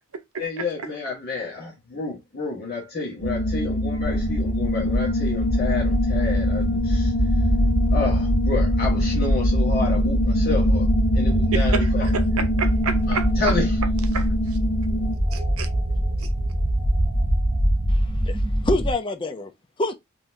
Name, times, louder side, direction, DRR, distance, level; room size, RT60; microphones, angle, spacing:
voice 1, 0.4-7.5 7.9-12.1 13.1-13.8, left 4 dB, 45° left, 1.4 m, -30 dB
sound 1, 3.2-15.2, left 1 dB, 80° left, 1.2 m, -24 dB
sound 2, 4.0-18.9, right 1 dB, 15° right, 1.1 m, -23 dB
voice 2, 11.5-11.9 12.1-13.3 14.1-14.6 15.3-15.7 16.2-16.3, right 5 dB, 80° right, 0.7 m, -29 dB
voice 3, 17.9-19.5 19.8-20.0, left 2 dB, 20° left, 0.5 m, -27 dB
4.0 x 3.0 x 2.6 m
head